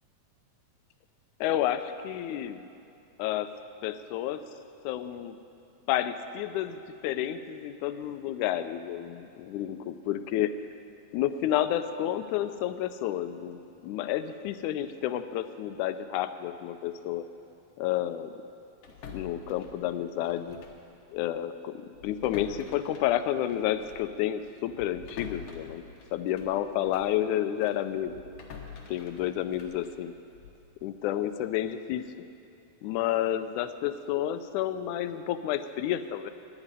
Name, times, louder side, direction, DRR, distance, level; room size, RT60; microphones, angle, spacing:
voice 1, 1.4-2.6 3.2-3.5 3.8-4.4 4.8-5.4 5.9-10.5 11.1-17.3 17.8-18.3 19.1-20.6 21.1-25.8 26.1-28.2 28.9-30.1 30.8-32.3 32.8-36.3, left 11 dB, 80° left, 11 dB, 2.0 m, -30 dB
sound 1, 18.8-20.9 21.1-21.3 21.9-27.2 27.6-30.7, left 5 dB, 60° left, 1.6 m, -47 dB
9.7 x 8.9 x 9.7 m, 2.6 s
omnidirectional pair, 3.5 m